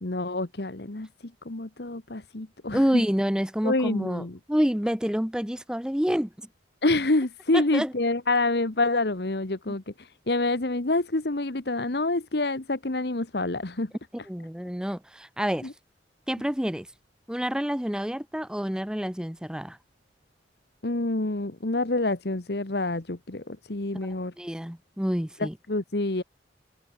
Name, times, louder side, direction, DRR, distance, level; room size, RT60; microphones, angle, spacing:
voice 1, 0.0-1.1 1.4-3.0 3.6-4.4 6.8-13.9 15.6-15.7 20.8-24.3 25.4-26.2, left 2 dB, 65° left, 1.3 m, -27 dB
voice 2, 2.7-4.2 4.5-6.3 7.5-7.9 14.3-15.7 16.3-16.9 17.3-19.8 24.4-25.5, equal, 5° right, 0.7 m, -28 dB
open air
head